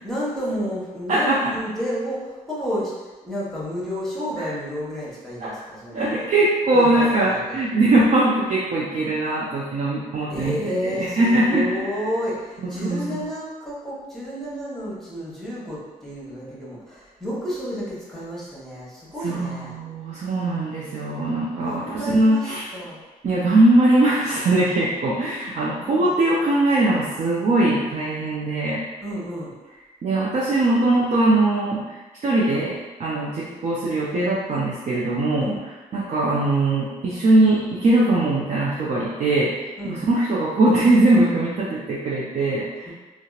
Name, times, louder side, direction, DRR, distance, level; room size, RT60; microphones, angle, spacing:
voice 1, 0.0-6.2 6.7-7.6 10.3-19.7 21.6-23.0 25.8-26.1 29.0-29.5 35.4-35.6 39.8-40.0 42.9-43.0, equal, ahead, -7 dB, 1.0 m, -31 dB
voice 2, 1.1-1.5 4.4-4.5 5.4-5.5 5.9-10.6 10.8-11.7 12.6-13.2 19.2-22.6 23.2-28.8 30.0-31.9 32.2-35.5 35.9-39.5 39.8-42.9, right 2 dB, 50° right, -6 dB, 0.5 m, -21 dB
2.7 x 2.0 x 2.3 m, 1.2 s
cardioid pair, 70°, 15 cm